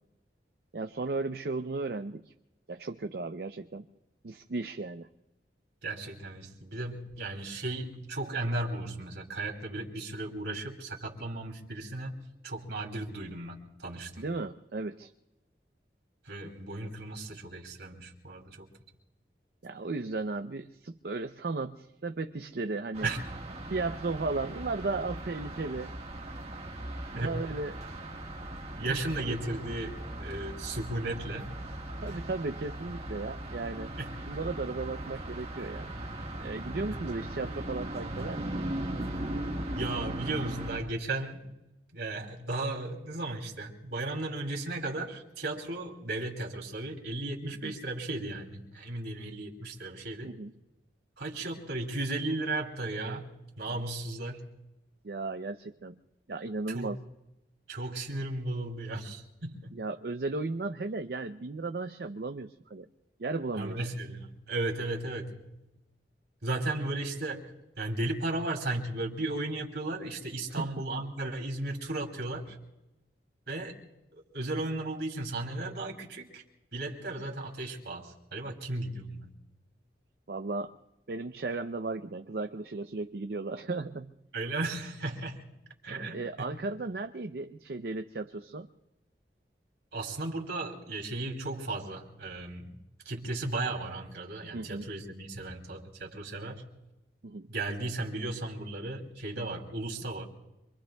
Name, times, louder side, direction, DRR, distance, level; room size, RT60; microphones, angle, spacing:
voice 1, 0.7-2.3 2.7-3.9 4.2-5.1 14.2-15.1 19.6-23.1 23.7-25.9 27.1-27.7 28.8-29.0 29.2-29.4 32.0-33.9 34.3-35.9 36.4-38.5 47.6-47.7 50.2-50.5 55.0-56.0 56.3-57.0 59.7-62.9 63.2-63.8 70.5-70.9 80.3-80.7 81.1-84.1 86.1-88.7 94.5-94.9 97.2-97.5, right 3 dB, 60° right, 7 dB, 0.5 m, -35 dB
voice 2, 5.8-12.2 12.4-14.2 16.2-18.7 23.0-23.2 27.1-27.3 28.8-31.5 32.1-32.2 34.0-34.1 37.2-37.3 39.8-41.5 41.9-50.3 51.2-53.3 53.6-54.4 56.7-56.9 57.7-59.7 63.5-65.5 66.4-67.5 67.8-72.6 73.5-73.8 74.1-76.4 76.7-79.3 84.3-85.4 85.8-86.2 89.9-92.8 93.0-96.6 97.5-100.2, right 2 dB, 85° right, 0 dB, 2.8 m, -35 dB
sound 1, 22.9-40.8, right 1 dB, 35° right, 1.6 m, -38 dB
26.5 x 24.0 x 2.3 m, 0.95 s
head